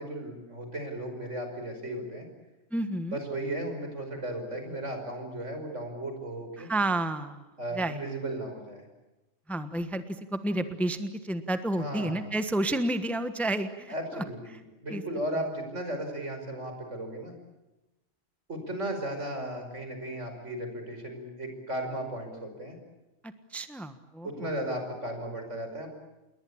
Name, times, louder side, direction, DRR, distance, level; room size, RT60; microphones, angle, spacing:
voice 1, 0.0-2.3 3.1-6.7 7.6-8.9 11.7-12.4 13.9-17.3 18.5-22.8 24.2-25.9, right 1 dB, 75° right, 5 dB, 5.9 m, -35 dB
voice 2, 2.7-3.2 6.6-7.4 7.7-8.0 9.5-14.2 14.5-14.6 14.9-15.0 15.3-15.4 23.5-24.5, right 1 dB, ahead, 10 dB, 1.2 m, -30 dB
28.5 x 21.5 x 8.7 m, 1.0 s
omnidirectional pair, 1.3 m